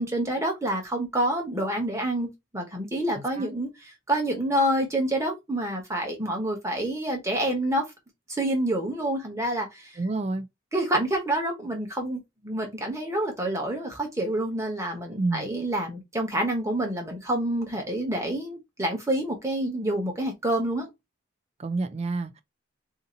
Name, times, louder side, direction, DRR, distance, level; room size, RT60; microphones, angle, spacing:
voice 1, 0.0-7.8 8.3-9.9 10.7-20.9, right 1 dB, 15° right, 1.1 m, -28 dB
voice 2, 3.2-3.5 10.0-10.5 15.2-15.5 21.6-22.4, right 3 dB, 35° right, 0.4 m, -29 dB
2.8 x 2.6 x 3.8 m
head